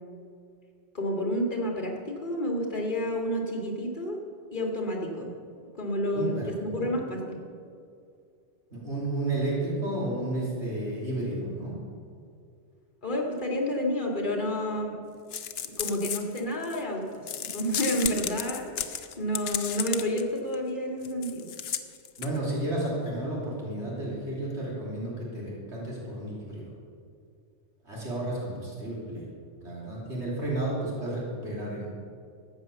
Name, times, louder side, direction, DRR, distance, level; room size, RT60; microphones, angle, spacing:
voice 1, 0.9-4.2 4.5-5.3 5.8-7.4 13.0-15.0 15.8-21.5, equal, 40° left, 0 dB, 2.1 m, -30 dB
voice 2, 6.1-6.5 8.7-11.8 22.2-26.6 27.8-29.2 29.6-31.9, right 1 dB, 70° right, -5 dB, 3.4 m, -32 dB
sound 1, 15.3-16.8 17.3-20.2 20.5-20.6 21.0-22.4, left 8 dB, 65° left, 0.9 m, -33 dB
13.0 x 8.7 x 6.8 m, 2.3 s
omnidirectional pair, 1.2 m